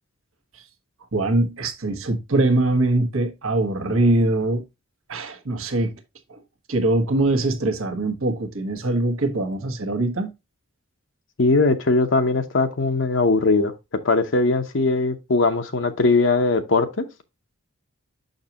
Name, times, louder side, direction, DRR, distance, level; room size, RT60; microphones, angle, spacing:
voice 1, 1.1-4.6 5.1-5.9 6.3-6.4 6.7-10.3, right 2 dB, 75° right, 1.3 m, -22 dB
voice 2, 11.4-13.7 14.0-17.1, left 3 dB, 60° left, 0.7 m, -20 dB
6.6 x 6.0 x 2.8 m
head